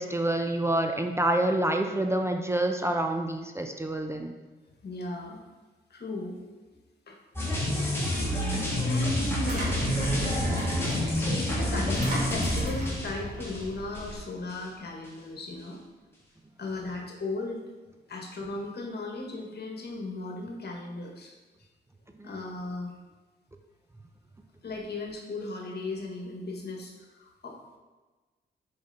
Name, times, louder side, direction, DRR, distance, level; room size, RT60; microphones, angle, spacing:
voice 1, 0.0-4.3 22.2-22.3, right 1 dB, 15° right, 4 dB, 0.6 m, -27 dB
voice 2, 4.8-5.5 5.9-6.4 7.1-7.2 7.7-8.5 8.8-9.8 10.8-15.8 16.6-17.6 18.1-21.4 22.2-22.9 24.6-27.6, left 2 dB, 60° left, 0 dB, 1.5 m, -36 dB
sound 1, 7.4-14.2 14.5-14.6, left 1 dB, 15° left, 2.0 m, -29 dB
Engine, 8.0-14.1, equal, 45° right, 2.0 m, -36 dB
5.8 x 5.1 x 4.1 m, 1.2 s
cardioid pair, 75°, 19 cm